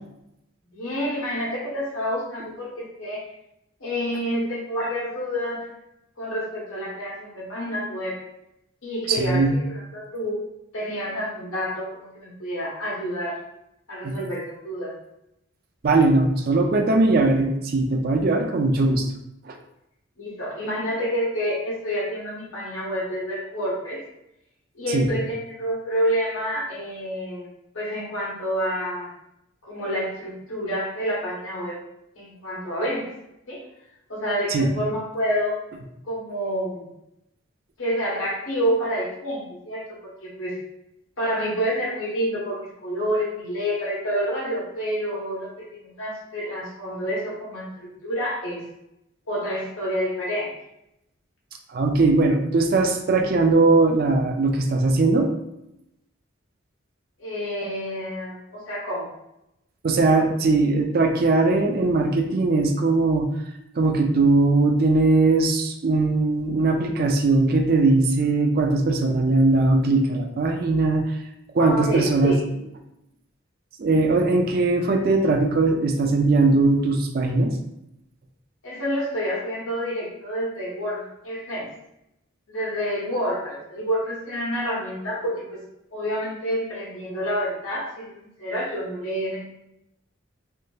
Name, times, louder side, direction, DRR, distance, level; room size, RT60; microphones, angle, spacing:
voice 1, 0.7-3.2 3.8-5.6 6.2-8.2 8.8-10.4 10.7-13.4 13.9-14.9 20.2-24.0 24.7-27.5 27.7-29.1 29.6-31.8 32.2-33.1 33.5-33.6 34.1-35.6 36.0-36.9 37.8-39.9 40.2-40.6 41.2-48.6 49.3-50.5 57.2-59.1 71.6-72.4 78.6-81.7 82.5-85.6 85.9-88.1 88.4-89.4, equal, 85° left, -5 dB, 1.2 m, -28 dB
voice 2, 9.1-9.6 14.0-14.2 15.8-19.1 19.5-19.6 24.9-25.1 34.5-34.7 51.7-55.3 59.8-63.3 63.8-71.1 71.5-72.4 73.8-77.5, right 3 dB, 45° right, 4 dB, 0.4 m, -20 dB
3.5 x 2.6 x 2.3 m, 0.84 s
head